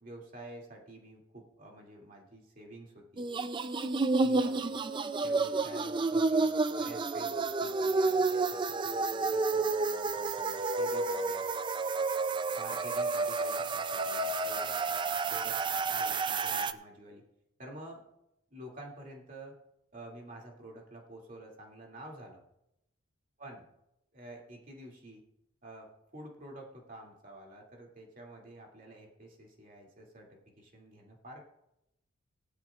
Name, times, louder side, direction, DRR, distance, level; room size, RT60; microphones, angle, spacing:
voice 1, 0.0-3.3 4.2-4.8 5.2-11.5 12.6-14.7 15.3-15.6 15.9-17.2 17.6-18.0 18.5-19.6 19.9-22.4 23.4-23.6 24.1-25.2 25.6-31.4, right 1 dB, 40° right, -1 dB, 2.4 m, -49 dB
sound 1, 3.2-16.7, right 3 dB, 25° right, 0.3 m, -30 dB
18.0 x 12.0 x 2.4 m, 0.84 s
head